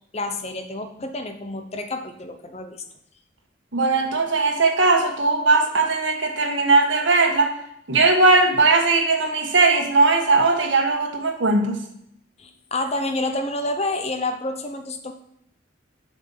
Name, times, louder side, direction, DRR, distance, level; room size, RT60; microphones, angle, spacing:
voice 1, 0.1-2.8 12.4-15.1, left 2 dB, 30° left, 6 dB, 0.8 m, -28 dB
voice 2, 3.7-7.5 7.9-11.8, right 3 dB, 70° right, 3 dB, 1.4 m, -19 dB
7.6 x 6.2 x 5.7 m, 0.75 s
head